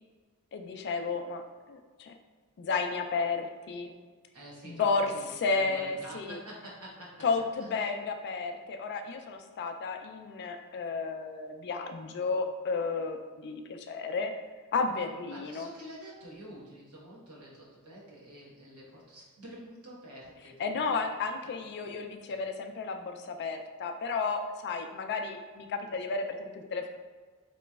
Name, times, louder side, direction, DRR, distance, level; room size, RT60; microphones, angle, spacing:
voice 1, 0.5-1.4 1.7-2.1 2.6-3.9 4.6-5.1 5.4-6.4 7.2-14.3 14.7-15.7 20.6-26.9, left 4 dB, 50° left, 6 dB, 0.3 m, -32 dB
voice 2, 4.3-7.3 7.6-7.7 15.3-21.0, right 1 dB, 75° right, -5 dB, 1.1 m, -47 dB
3.9 x 2.9 x 2.3 m, 1.5 s
head